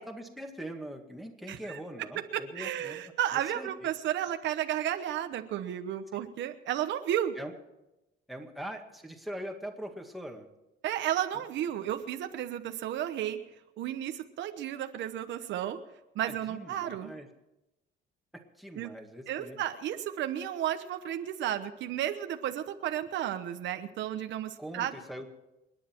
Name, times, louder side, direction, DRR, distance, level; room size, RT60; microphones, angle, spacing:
voice 1, 0.0-3.9 7.4-7.5 8.3-10.5 16.2-17.3 18.3-19.6 24.6-25.3, right 1 dB, ahead, 2 dB, 1.9 m, -42 dB
voice 2, 1.5-1.8 2.3-7.4 10.8-13.4 13.8-15.8 16.1-17.1 18.8-18.9 19.3-25.0, right 11 dB, 70° right, 8 dB, 1.0 m, -33 dB
28.5 x 10.0 x 4.5 m, 0.96 s
cardioid pair, 130°, 20 cm